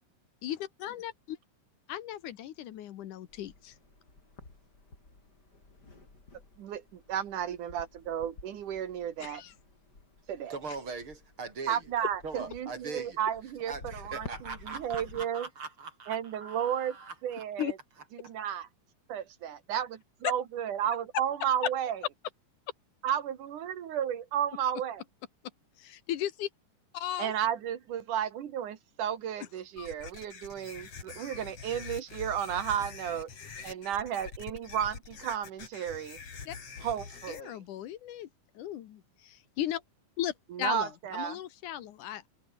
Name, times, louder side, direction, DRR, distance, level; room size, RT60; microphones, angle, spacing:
voice 1, 0.4-1.4 1.9-3.7 9.2-9.5 17.6-17.7 25.8-26.5 26.9-27.3 29.8-29.9 36.5-36.6 37.3-38.3 38.6-39.8 40.2-42.3, left 12 dB, 75° left, 2.7 m, -36 dB
sound 1, 3.3-15.2, left 3 dB, 30° left, 5.1 m, -52 dB
voice 2, 7.1-9.4 10.3-10.5 11.7-15.5 16.1-17.0 17.2-17.8 18.2-18.7 19.1-22.0 23.0-25.0 27.2-33.3 33.6-36.2 36.8-37.6 40.5-41.4, right 9 dB, 75° right, 3.2 m, -33 dB
voice 3, 10.5-11.8 12.2-13.2 13.7-17.4, right 4 dB, 40° right, 4.5 m, -41 dB
sound 2, 29.8-37.4, left 5 dB, 50° left, 4.2 m, -45 dB
omnidirectional pair, 3.7 m